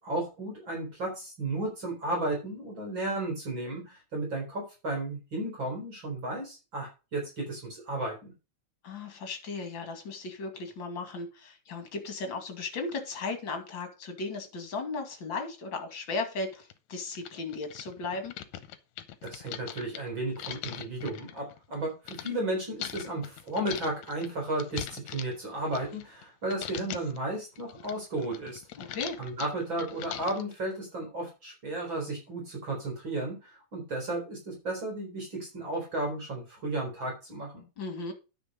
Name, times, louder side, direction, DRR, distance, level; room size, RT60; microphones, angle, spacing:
voice 1, 0.0-8.3 19.2-28.6 29.2-37.6, right 2 dB, 40° right, 0 dB, 4.5 m, -34 dB
voice 2, 8.8-18.3 28.8-29.2 37.8-38.1, left 3 dB, 45° left, 6 dB, 2.7 m, -36 dB
sound 1, 16.0-16.1 16.7-16.8 17.1-22.3 22.8-26.2 26.5-27.2 27.6-30.6, left 11 dB, 75° left, 2.1 m, -41 dB
9.8 x 6.0 x 5.4 m, 0.30 s
omnidirectional pair, 3.3 m